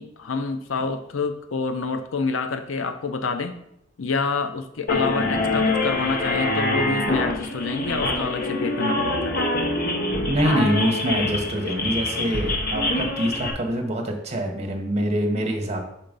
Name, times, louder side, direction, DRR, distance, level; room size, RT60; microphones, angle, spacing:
voice 1, 0.0-3.6 4.0-9.4, left 4 dB, 85° left, 9 dB, 0.6 m, -27 dB
sound 1, 4.9-13.5, left 2 dB, 50° left, 1.0 m, -25 dB
voice 2, 10.2-15.8, right 1 dB, 35° right, 3 dB, 1.2 m, -25 dB
5.8 x 3.9 x 5.2 m, 0.76 s
head